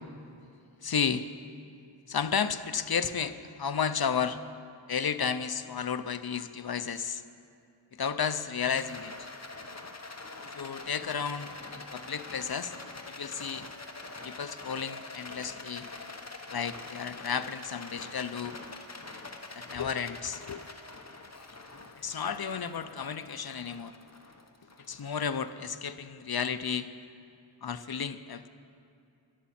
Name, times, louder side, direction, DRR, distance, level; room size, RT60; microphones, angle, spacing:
voice 1, 0.8-1.2 2.1-4.4 4.9-7.2 7.9-9.3 10.5-12.7 13.1-13.7 14.2-15.9 16.5-18.5 19.5-20.6 22.0-23.9 24.9-26.9 27.6-28.5, left 7 dB, 50° left, 12 dB, 0.6 m, -32 dB
Rattle, 8.7-26.1, left 3 dB, 35° left, 1.0 m, -45 dB
18.5 x 11.0 x 4.3 m, 2.6 s
wide cardioid pair, 50°, 49 cm